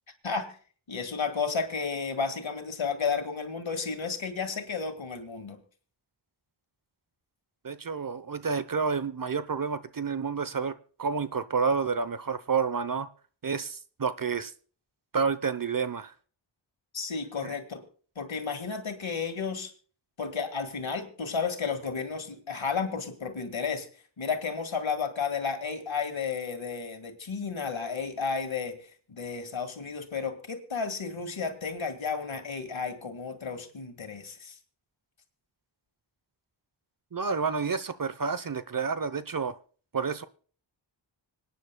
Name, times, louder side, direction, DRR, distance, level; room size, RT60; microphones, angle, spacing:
voice 1, 0.2-0.6 0.9-5.6 16.9-17.8 18.2-19.7 20.2-23.9 24.2-34.6, left 5 dB, 80° left, 2.0 m, -32 dB
voice 2, 7.6-13.1 13.4-14.5 15.1-16.1 17.4-17.5 37.1-39.6 39.9-40.2, right 5 dB, 45° right, 0.9 m, -29 dB
26.0 x 9.7 x 2.3 m
wide cardioid pair, 55°, 46 cm